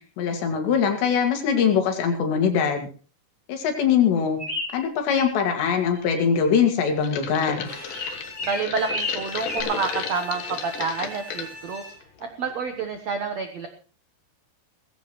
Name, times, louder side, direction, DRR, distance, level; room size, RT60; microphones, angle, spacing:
voice 1, 0.2-2.9 3.5-4.4 4.7-7.7, left 7 dB, 85° left, 4 dB, 4.5 m, -22 dB
sound 1, 4.4-5.3 5.6-6.2 7.9-9.6, left 2 dB, 25° left, 4.1 m, -32 dB
sound 2, 7.0-11.5 12.0-12.5 12.8-12.9, left 8 dB, 60° left, 2.7 m, -34 dB
Bowed string instrument, 7.6-12.2, left 1 dB, 40° left, 5.7 m, -41 dB
voice 2, 8.4-11.8 12.2-13.7, right 5 dB, 75° right, 5 dB, 1.5 m, -28 dB
18.5 x 15.5 x 3.2 m, 0.37 s
omnidirectional pair, 4.9 m